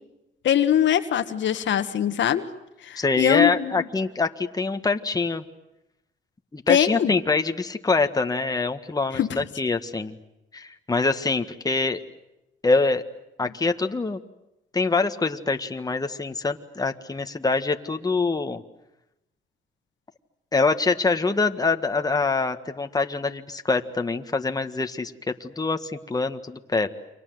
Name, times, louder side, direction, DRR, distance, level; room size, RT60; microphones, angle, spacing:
voice 1, 0.4-2.4 2.8-3.9 6.7-7.1 9.1-9.3, left 10 dB, 70° left, 9 dB, 1.7 m, -22 dB
voice 2, 3.0-5.4 6.5-10.2 10.5-12.0 12.6-13.0 13.4-14.2 14.7-18.6 20.5-26.9, left 3 dB, 20° left, 6 dB, 1.7 m, -25 dB
29.5 x 25.0 x 7.9 m, 0.91 s
cardioid pair, 90°, 20 cm